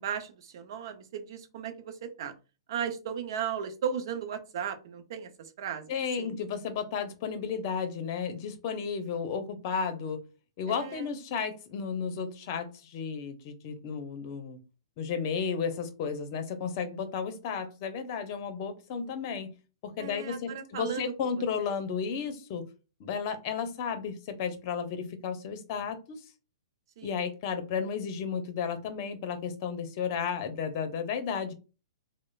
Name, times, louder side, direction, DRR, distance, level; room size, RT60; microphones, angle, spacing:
voice 1, 0.0-2.3 2.7-6.4 10.7-11.1 20.0-21.1 21.6-21.7 27.0-27.2, right 7 dB, 55° right, 7 dB, 0.6 m, -36 dB
voice 2, 5.9-10.2 10.6-14.6 15.0-19.6 19.8-22.7 23.0-26.2 27.0-31.5, left 6 dB, 40° left, 8 dB, 0.6 m, -33 dB
3.0 x 2.0 x 2.3 m, 0.31 s
hypercardioid pair, 135°, 3 cm